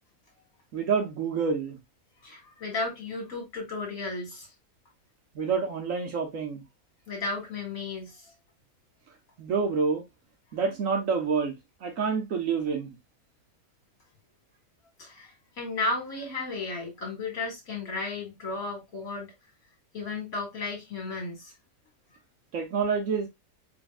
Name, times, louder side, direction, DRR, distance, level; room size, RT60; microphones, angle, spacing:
voice 1, 0.7-1.8 5.3-6.6 9.4-10.0 10.5-11.5 11.8-13.0 22.5-23.3, right 5 dB, 65° right, 1.3 m, -27 dB
voice 2, 2.2-4.5 7.1-8.3 15.0-19.3 19.9-21.5, left 3 dB, 70° left, 2.3 m, -34 dB
4.4 x 3.5 x 2.2 m
omnidirectional pair, 1.5 m